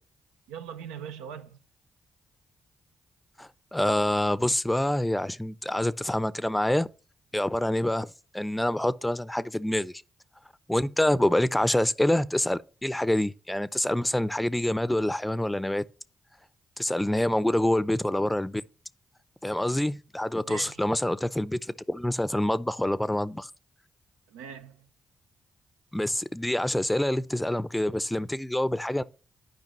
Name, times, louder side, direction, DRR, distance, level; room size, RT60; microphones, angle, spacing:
voice 1, 0.5-1.6 20.4-20.8 24.3-24.9, right 8 dB, 90° right, 0.5 m, -41 dB
voice 2, 3.4-6.9 7.3-9.9 10.7-15.8 16.8-18.6 19.4-23.5 25.9-29.0, left 1 dB, 10° left, 0.5 m, -26 dB
11.0 x 5.0 x 3.1 m
hypercardioid pair, 45°, 0 cm